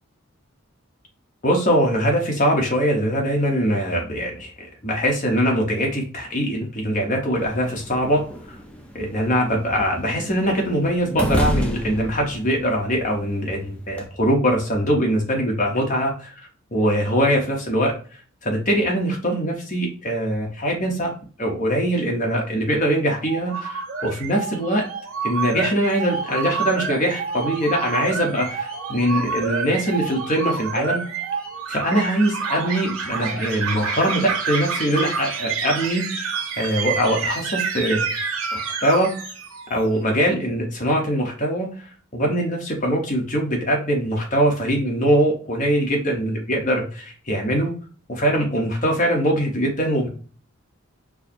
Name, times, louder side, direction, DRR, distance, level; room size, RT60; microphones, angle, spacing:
voice 1, 1.4-8.2 8.9-17.9 18.4-21.1 21.4-24.9 25.2-31.0 31.7-36.1 36.6-38.1 38.5-39.1 39.7-41.7 42.1-47.7 48.1-50.1, equal, 35° left, 0 dB, 1.0 m, -22 dB
sound 1, 7.4-14.1, equal, 5° left, 0.5 m, -31 dB
sound 2, 23.2-39.8, right 5 dB, 70° right, 0.9 m, -28 dB
4.7 x 2.1 x 4.3 m, 0.40 s
head